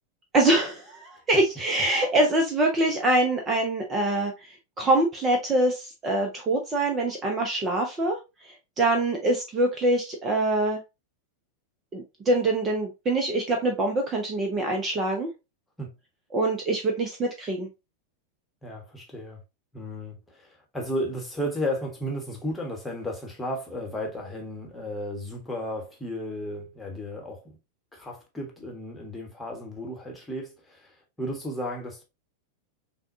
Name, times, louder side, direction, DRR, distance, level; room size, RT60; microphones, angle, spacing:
voice 1, 0.3-8.2 8.4-10.8 11.9-15.3 16.3-17.7, right 2 dB, 25° right, 0.8 m, -24 dB
voice 2, 18.6-19.4 19.7-27.6 27.9-32.0, equal, 5° left, 1.3 m, -34 dB
6.1 x 2.3 x 2.7 m
figure-of-eight pair, 90°, 0 cm